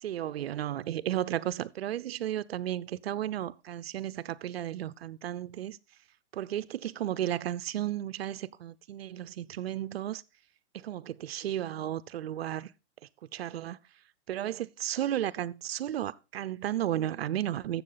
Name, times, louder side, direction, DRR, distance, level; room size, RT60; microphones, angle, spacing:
voice 1, 0.0-5.8 6.3-10.2 10.7-12.7 13.3-13.8 14.3-17.8, right 12 dB, 60° right, 0.7 m, -33 dB
13.0 x 7.5 x 3.9 m
hypercardioid pair, 170°, 35 cm